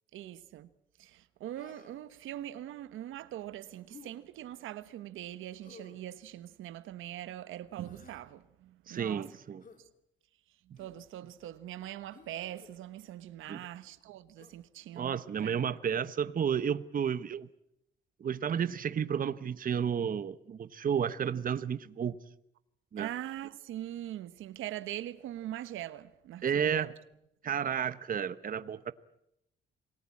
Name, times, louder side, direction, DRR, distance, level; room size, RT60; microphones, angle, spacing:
voice 1, 0.1-0.7 1.0-9.3 9.8-9.9 10.7-15.7 23.0-26.9, right 13 dB, 85° right, 1.2 m, -42 dB
Human voice, 1.6-2.1 3.9-4.1 5.6-6.1 7.7-8.3 9.6-9.8 10.7-11.0 12.1-12.7 14.4-14.6, left 5 dB, 45° left, 3.2 m, -55 dB
voice 2, 8.9-9.6 13.5-13.6 15.0-17.5 18.2-22.2 22.9-23.1 26.4-26.9 27.4-28.9, right 8 dB, 45° right, 1.0 m, -32 dB
27.5 x 19.0 x 8.5 m
cardioid pair, 90°, 20 cm